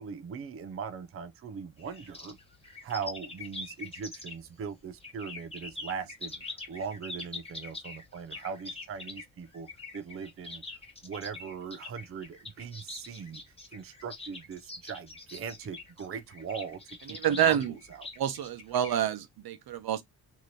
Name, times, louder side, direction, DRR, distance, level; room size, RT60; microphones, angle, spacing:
voice 1, 0.0-2.4 2.8-9.7 9.9-10.6 11.0-13.4 13.7-18.1, right 6 dB, 40° right, 0.6 m, -40 dB
sound 1, 1.8-4.6 5.0-19.0, left 3 dB, 15° left, 1.2 m, -44 dB
voice 2, 17.1-17.7 18.2-20.0, right 10 dB, 80° right, 0.8 m, -28 dB
4.2 x 2.9 x 3.2 m
wide cardioid pair, 180°, 37 cm